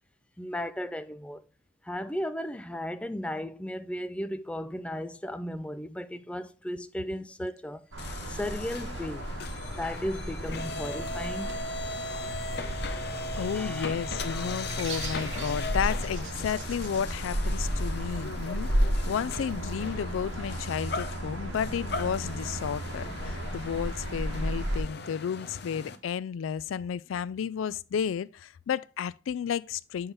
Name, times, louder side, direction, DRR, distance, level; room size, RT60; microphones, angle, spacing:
voice 1, 0.4-1.4 1.8-7.9 8.3-9.3 9.7-11.9 13.0-14.0 14.3-14.5, equal, 5° left, 0.3 m, -36 dB
sound 1, 7.9-24.8, right 1 dB, 80° right, 1.4 m, -34 dB
sound 2, 8.0-26.0, left 3 dB, 55° left, 0.7 m, -38 dB
voice 2, 13.4-30.1, left 7 dB, 85° left, 0.3 m, -32 dB
7.0 x 5.5 x 3.4 m
head